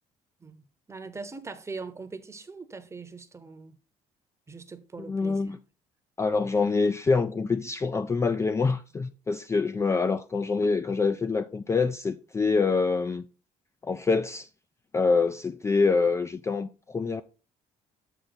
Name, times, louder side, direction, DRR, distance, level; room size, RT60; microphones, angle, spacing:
voice 1, 0.4-3.8 4.5-5.5, right 4 dB, 20° right, 0.9 m, -41 dB
voice 2, 5.0-5.6 6.2-13.2 13.8-14.5 14.9-17.2, left 4 dB, 20° left, 0.3 m, -25 dB
8.1 x 4.4 x 4.0 m
cardioid pair, 105°, 14 cm